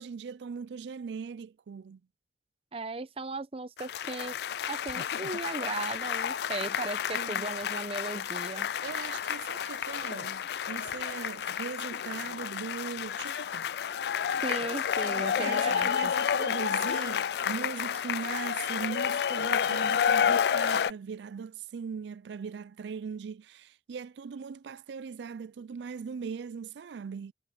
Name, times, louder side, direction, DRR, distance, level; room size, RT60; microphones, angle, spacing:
voice 1, 0.0-2.0 7.1-7.5 8.8-10.4 10.7-13.7 15.2-27.3, right 6 dB, 80° right, 0.4 m, -39 dB
voice 2, 2.7-8.7 14.4-16.1, right 3 dB, 35° right, 0.8 m, -37 dB
sound 1, 3.8-20.9, left 8 dB, 65° left, 0.3 m, -30 dB
head